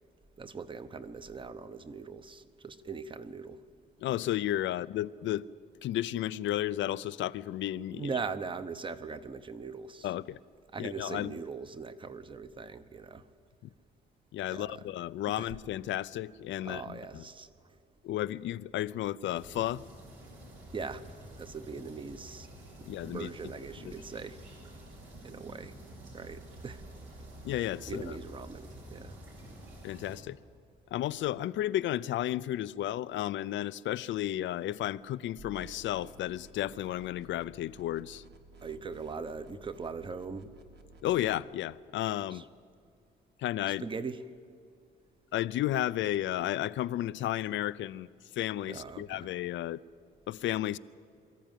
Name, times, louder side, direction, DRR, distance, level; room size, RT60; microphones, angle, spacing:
voice 1, 0.4-3.6 7.9-10.1 10.7-13.2 14.5-14.8 15.4-15.5 16.6-17.5 20.7-21.0 21.4-22.5 23.0-24.4 25.2-25.8 26.1-26.8 27.9-29.5 38.6-40.5 42.3-42.4 43.8-44.2 48.7-49.3, right 5 dB, 25° right, 0.9 m, -40 dB
voice 2, 4.0-5.5 5.8-8.1 10.0-10.4 10.8-11.4 14.3-17.2 18.0-19.8 22.9-23.3 23.8-23.9 27.4-28.0 29.8-30.4 30.9-38.2 41.0-42.4 43.4-43.8 45.3-48.1 48.3-49.8 50.3-50.8, left 13 dB, 80° left, 0.5 m, -33 dB
sound 1, 19.3-30.2, right 1 dB, 90° right, 5.5 m, -49 dB
sound 2, 35.4-41.4, right 2 dB, 60° right, 1.6 m, -54 dB
24.0 x 14.0 x 9.2 m
cardioid pair, 140°, 19 cm